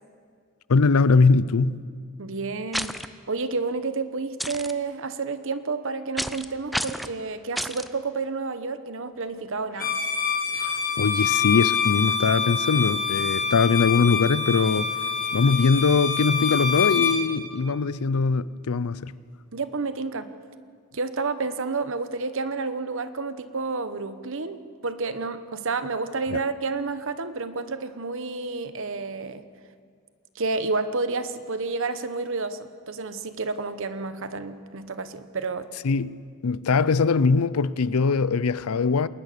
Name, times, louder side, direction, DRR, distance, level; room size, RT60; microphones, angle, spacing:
voice 1, 0.7-1.8 10.5-14.9 15.3-19.1 26.3-26.4 35.8-36.1 36.4-39.1, left 4 dB, 75° left, 0.5 m, -21 dB
voice 2, 2.2-2.9 3.3-10.0 19.5-20.3 20.9-29.4 30.3-35.7, right 4 dB, 60° right, 1.0 m, -30 dB
sound 1, 2.7-3.1 4.4-4.7 6.2-6.5 6.7-7.1 7.6-7.9, equal, ahead, 0.5 m, -30 dB
Bowed string instrument, 9.7-17.2, left 6 dB, 40° left, 3.0 m, -26 dB
21.5 x 19.0 x 6.8 m
head